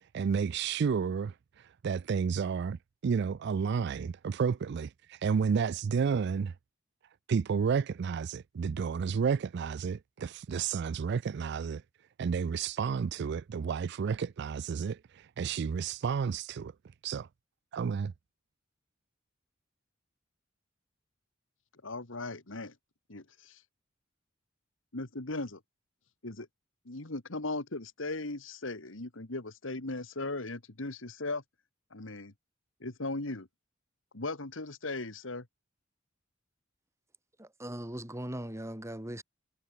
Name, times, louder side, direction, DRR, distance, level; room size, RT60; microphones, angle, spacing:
voice 1, 0.1-1.3 1.8-2.8 3.0-6.5 7.3-11.8 12.2-16.7 17.0-17.3 17.7-18.1, right 6 dB, 60° right, 0.4 m, -31 dB
voice 2, 21.8-22.7 23.1-23.6 24.9-25.6 26.2-26.5 26.9-31.4 31.9-32.3 32.8-33.5 34.1-35.5, left 2 dB, 85° left, 2.2 m, -38 dB
voice 3, 37.4-39.2, right 1 dB, 15° right, 2.9 m, -39 dB
head